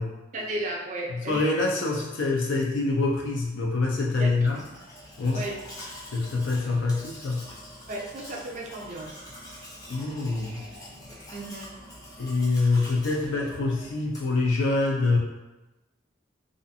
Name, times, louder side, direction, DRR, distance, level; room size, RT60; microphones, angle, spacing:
voice 1, 0.3-1.5 4.1-4.5 5.3-5.6 7.9-9.2 11.3-11.7, right 1 dB, 40° right, -1 dB, 0.4 m, -34 dB
voice 2, 1.1-4.6 5.2-5.4 6.1-7.4 9.9-10.6 12.2-15.2, left 3 dB, 80° left, -1 dB, 0.4 m, -25 dB
Domestic sounds home sounds, 4.4-14.5, equal, 20° left, 0.5 m, -45 dB
2.4 x 2.4 x 2.6 m, 1.0 s
head